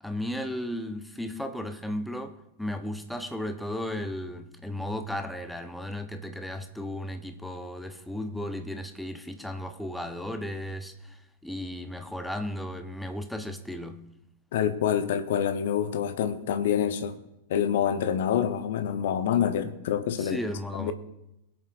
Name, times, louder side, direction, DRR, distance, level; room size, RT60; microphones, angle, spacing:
voice 1, 0.0-14.0 20.2-20.9, left 1 dB, ahead, 0.9 m, -35 dB
voice 2, 14.5-17.2 17.5-20.4 20.7-20.9, left 9 dB, 55° left, 0.8 m, -26 dB
21.5 x 8.0 x 2.6 m
figure-of-eight pair, 90°, 0 cm